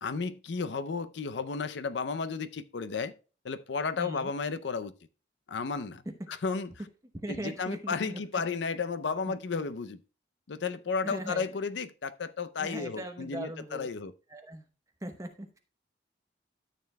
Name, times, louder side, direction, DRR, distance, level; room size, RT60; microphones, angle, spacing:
voice 1, 0.0-3.1 3.4-4.9 5.5-6.0 6.3-6.7 7.3-10.0 10.5-14.1, left 5 dB, 75° left, 0.5 m, -33 dB
voice 2, 4.0-4.3 7.1-8.4 9.3-9.4 11.0-11.5 12.6-13.9 14.3-14.7 15.0-15.6, right 1 dB, 15° right, 0.8 m, -39 dB
12.5 x 6.7 x 2.2 m
head